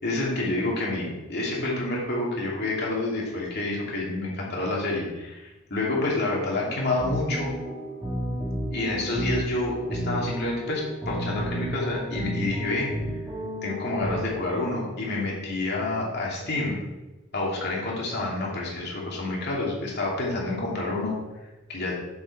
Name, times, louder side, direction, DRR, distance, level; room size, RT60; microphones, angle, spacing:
voice 1, 0.0-7.5 8.7-12.9 13.6-16.8 17.3-21.1 21.7-22.0, left 2 dB, 55° left, -4 dB, 2.6 m, -28 dB
sound 1, 7.0-14.2, equal, 10° right, 1.9 m, -32 dB
7.4 x 7.0 x 4.3 m, 1.1 s
head